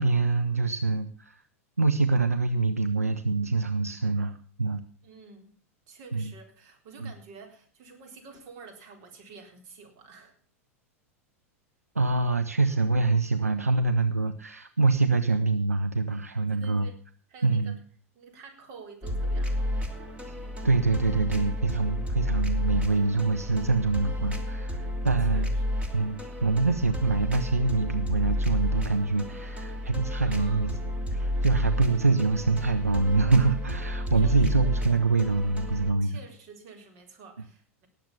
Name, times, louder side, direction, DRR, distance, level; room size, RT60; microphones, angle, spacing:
voice 1, 0.0-1.4 1.8-4.8 6.1-6.3 7.0-7.1 12.0-16.9 17.4-17.8 20.6-25.5 25.9-30.7 31.1-36.2, right 3 dB, 90° right, 8 dB, 0.8 m, -25 dB
voice 2, 5.0-5.5 5.9-10.4 16.5-17.0 17.3-17.8 18.1-19.8 25.2-25.8 30.2-30.9 31.8-32.0 34.1-34.9 36.0-37.9, right 4 dB, 50° right, 4 dB, 4.0 m, -49 dB
sound 1, 19.0-35.9, left 1 dB, 15° right, 2.9 m, -31 dB
19.0 x 7.7 x 7.0 m, 0.43 s
figure-of-eight pair, 90°, 8 cm